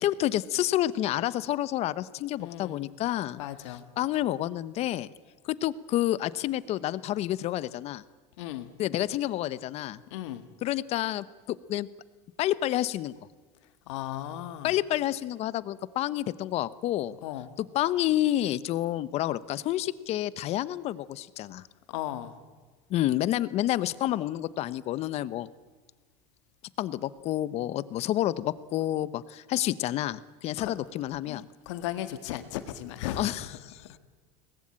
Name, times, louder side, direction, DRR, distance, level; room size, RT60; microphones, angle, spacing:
voice 1, 0.0-3.4 3.7-5.1 5.4-8.0 8.8-10.0 10.6-11.9 12.4-13.1 14.6-17.2 17.6-21.6 22.9-25.5 26.8-31.4 33.2-33.8, left 13 dB, 45° left, 17 dB, 0.9 m, -29 dB
voice 2, 2.4-2.9 3.4-3.9 8.4-8.7 10.1-10.4 13.9-14.7 17.2-17.5 21.9-22.3 30.6-30.7 31.3-33.3 33.8-34.0, left 13 dB, 85° left, 10 dB, 1.9 m, -36 dB
22.5 x 19.5 x 8.9 m, 1.4 s
supercardioid pair, 135°, 15 cm